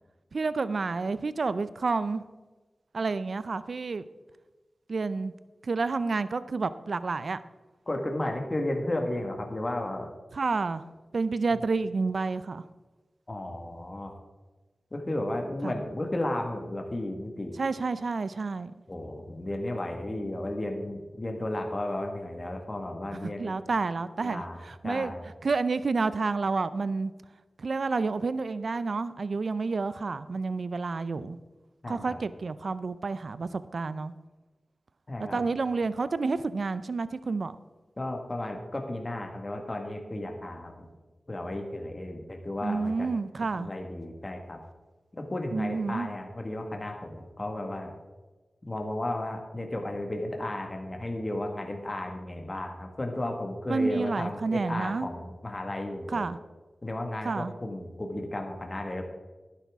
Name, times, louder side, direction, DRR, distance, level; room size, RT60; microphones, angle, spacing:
voice 1, 0.3-2.2 2.9-4.1 4.9-5.3 5.6-7.4 10.3-10.8 11.1-12.6 15.6-15.7 17.6-18.7 23.4-25.1 25.4-27.1 27.6-31.4 31.9-34.1 35.2-37.6 42.6-43.7 45.5-46.1 53.7-55.1 56.1-56.4 57.2-57.5, right 4 dB, 70° right, 14 dB, 0.4 m, -29 dB
voice 2, 7.9-10.1 13.3-14.2 14.9-17.5 18.9-23.6 24.2-24.6 24.8-25.3 31.8-32.2 35.1-35.4 38.0-40.7 41.3-43.1 43.5-44.6 45.1-47.9 48.7-56.3 56.8-59.0, left 1 dB, 35° left, 3 dB, 1.6 m, -34 dB
11.5 x 9.8 x 3.6 m, 1.2 s
cardioid pair, 50°, 0 cm